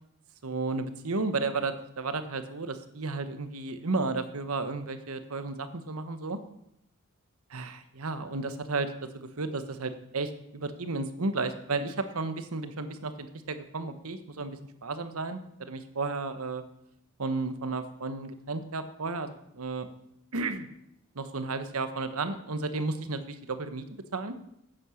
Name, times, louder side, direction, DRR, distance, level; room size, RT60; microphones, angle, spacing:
voice 1, 0.4-6.4 7.5-16.6 17.2-19.9 20.3-20.7 21.1-23.8 24.1-24.3, right 3 dB, 85° right, 10 dB, 1.1 m, -33 dB
9.7 x 8.7 x 6.5 m, 0.77 s
head